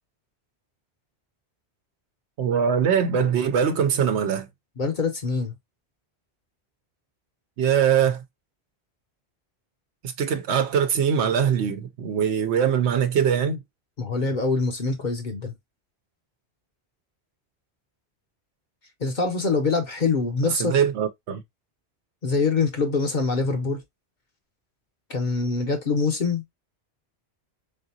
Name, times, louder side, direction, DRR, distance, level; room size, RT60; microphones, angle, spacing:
voice 1, 2.4-4.5 7.6-8.2 10.0-13.6 20.6-21.4, right 8 dB, 85° right, 0.9 m, -22 dB
voice 2, 4.8-5.5 14.0-15.5 19.0-20.8 22.2-23.8 25.1-26.4, left 4 dB, 50° left, 0.9 m, -24 dB
3.8 x 3.5 x 2.7 m
omnidirectional pair, 1.1 m